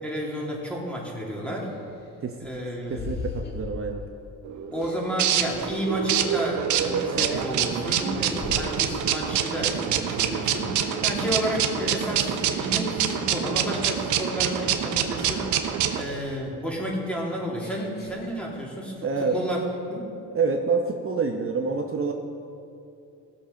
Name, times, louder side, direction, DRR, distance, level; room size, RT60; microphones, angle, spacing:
voice 1, 0.0-1.8 2.4-3.1 4.7-19.6 19.9-20.1, equal, 5° left, -3 dB, 3.0 m, -31 dB
sound 1, 0.9-1.0 1.6-4.3 4.8-7.4 7.8-9.0 9.5-9.8 10.1-11.4 11.8-12.2 12.7-13.3 13.8-15.7 16.1-18.8 19.1-19.8, left 4 dB, 35° left, 2.0 m, -42 dB
voice 2, 2.9-4.0 19.0-19.4 20.3-22.1, right 4 dB, 45° right, 3 dB, 0.9 m, -26 dB
sound 2, 4.4-16.0, right 9 dB, 75° right, 0.9 m, -26 dB
18.0 x 7.0 x 5.2 m, 2.6 s
cardioid pair, 90°, 30 cm